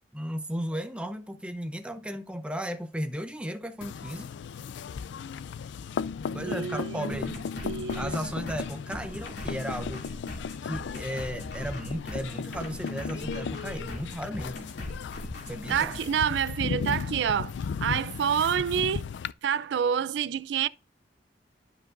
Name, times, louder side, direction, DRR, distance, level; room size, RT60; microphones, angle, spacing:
voice 1, 0.1-4.3 6.3-7.3 8.0-10.0 10.6-14.7 15.5-16.0, equal, 5° right, 0.7 m, -35 dB
sound 1, 3.8-19.3, left 6 dB, 90° left, 0.3 m, -36 dB
voice 2, 6.3-7.3 7.6-8.1 15.7-17.5 17.8-19.0 19.4-20.7, right 8 dB, 85° right, 0.3 m, -28 dB
sound 2, 7.1-16.0, left 1 dB, 70° left, 2.6 m, -40 dB
12.0 x 5.3 x 2.5 m
head